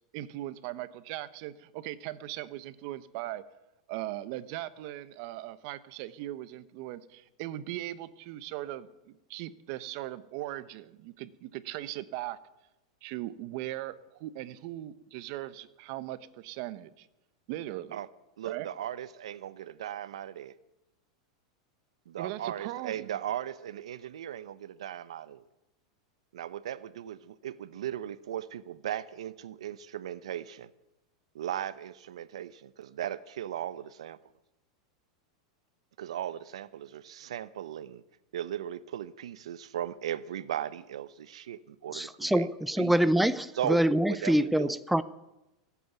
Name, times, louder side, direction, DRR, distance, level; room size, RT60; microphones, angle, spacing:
voice 1, 0.1-3.5 3.9-12.4 13.0-17.1 17.5-18.0 18.4-18.7 22.2-23.2, right 15 dB, 55° right, 15 dB, 1.1 m, -39 dB
voice 2, 18.4-20.5 22.1-25.4 26.3-30.7 31.3-34.2 36.0-38.0 38.3-42.5 42.8-42.9 43.6-43.8 44.1-44.7, right 11 dB, 85° right, 16 dB, 0.7 m, -37 dB
voice 3, 41.9-45.0, right 1 dB, ahead, 13 dB, 0.6 m, -25 dB
17.5 x 8.5 x 9.2 m, 0.95 s
supercardioid pair, 125°, 3 cm